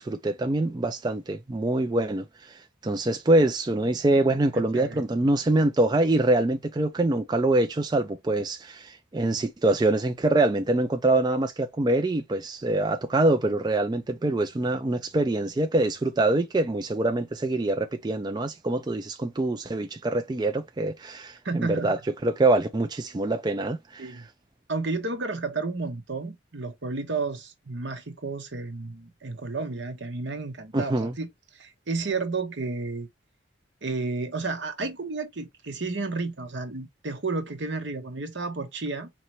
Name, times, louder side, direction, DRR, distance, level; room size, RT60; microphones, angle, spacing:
voice 1, 0.0-24.2 30.7-31.1, right 2 dB, 20° right, 0.3 m, -25 dB
voice 2, 4.5-5.0 21.4-21.9 24.0-24.3 24.7-31.3 31.5-33.1 33.8-39.1, right 3 dB, 65° right, 1.0 m, -32 dB
4.2 x 2.9 x 3.0 m
head